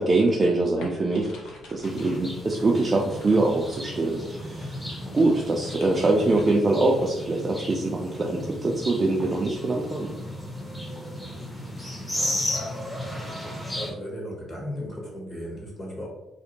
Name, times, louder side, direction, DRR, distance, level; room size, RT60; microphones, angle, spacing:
voice 1, 0.0-4.8 5.1-10.1, right 2 dB, 35° right, -1 dB, 0.3 m, -24 dB
sound 1, 0.8-6.4, left 3 dB, 85° left, 0.6 m, -46 dB
sound 2, 1.8-13.9, left 1 dB, 10° left, 0.6 m, -34 dB
voice 2, 13.7-16.1, equal, 40° left, -2 dB, 1.0 m, -35 dB
2.5 x 2.1 x 2.8 m, 0.93 s
cardioid pair, 90°, 0 cm